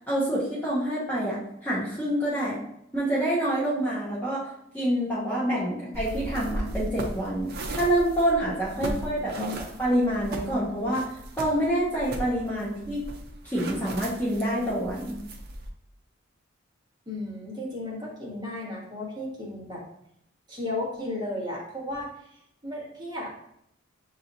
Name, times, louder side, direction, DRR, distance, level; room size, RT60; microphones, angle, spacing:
voice 1, 0.1-2.6 2.9-4.5 4.7-9.5 9.8-11.1 11.4-13.0 13.4-15.2, right 1 dB, 10° left, -8 dB, 0.9 m, -27 dB
sound 1, 5.9-15.7, right 1 dB, 50° right, 0.6 m, -37 dB
voice 2, 8.8-9.6 17.1-19.8 20.5-22.3 22.6-23.3, left 1 dB, 20° right, -5 dB, 1.4 m, -34 dB
6.8 x 2.9 x 2.6 m, 0.75 s
head